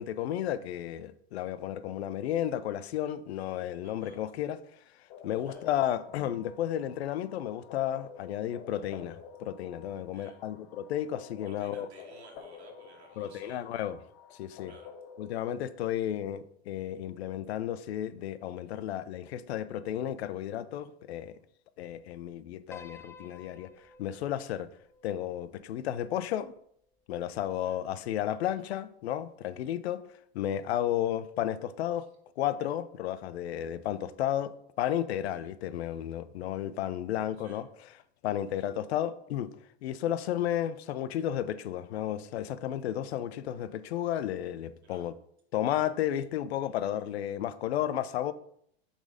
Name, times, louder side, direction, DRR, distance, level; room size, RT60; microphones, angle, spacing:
voice 1, 0.0-4.6 5.2-11.9 13.2-14.0 14.4-14.7 15.2-21.4 21.8-24.7 25.0-26.5 27.1-30.0 30.3-32.1 32.4-37.7 38.2-39.5 39.8-45.1 45.5-48.3, left 11 dB, 75° left, 0.6 m, -33 dB
voice 2, 3.8-4.2 5.4-5.6 10.1-10.4 11.4-13.6 14.6-14.9 24.5-24.6 27.6-27.8 30.8-30.9 32.0-32.1 35.3-35.5 37.4-37.6 38.6-38.7 44.8-45.0, right 4 dB, 90° right, 1.9 m, -56 dB
sound 1, 5.1-15.4, left 6 dB, 55° left, 1.3 m, -50 dB
Piano, 22.7-27.1, left 4 dB, 10° left, 0.6 m, -54 dB
6.0 x 4.2 x 5.1 m
hypercardioid pair, 100°, 32 cm